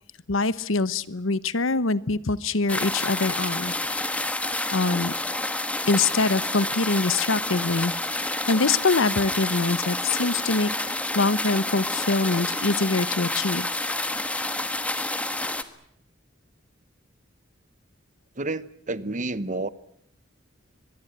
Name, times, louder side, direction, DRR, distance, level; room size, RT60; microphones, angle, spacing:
voice 1, 0.3-4.3 4.7-5.1 5.9-7.9 8.5-10.7 11.1-13.7, left 3 dB, 80° left, 17 dB, 1.0 m, -24 dB
sound 1, 2.7-15.6, left 2 dB, 5° left, 1.4 m, -29 dB
voice 2, 18.4-19.7, right 2 dB, 40° right, 16 dB, 1.0 m, -30 dB
23.5 x 22.0 x 9.0 m, 0.71 s
head